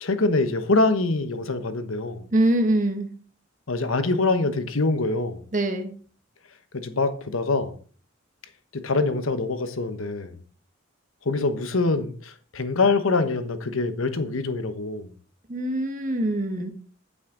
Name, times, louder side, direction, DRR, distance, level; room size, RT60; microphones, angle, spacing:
voice 1, 0.0-2.3 3.7-5.4 6.7-7.8 8.7-10.3 11.2-15.1, left 3 dB, 90° left, 1.1 m, -24 dB
voice 2, 2.3-3.1 5.5-5.9 15.5-16.7, right 1 dB, 40° right, 1.4 m, -23 dB
8.8 x 8.2 x 3.9 m
head